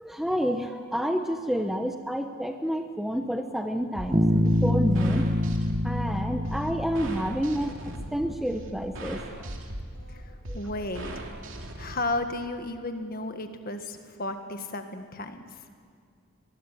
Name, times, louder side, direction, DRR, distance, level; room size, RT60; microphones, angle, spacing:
voice 1, 0.0-5.3 5.8-9.2 10.5-10.6, equal, ahead, 5 dB, 0.9 m, -29 dB
sound 1, 3.9-11.9, right 1 dB, 65° right, 2.7 m, -39 dB
Bass guitar, 4.1-7.8, left 1 dB, 20° right, 1.2 m, -26 dB
voice 2, 10.1-11.1 11.7-15.6, left 2 dB, 40° left, 7 dB, 1.7 m, -34 dB
23.0 x 20.0 x 8.5 m, 2.2 s
head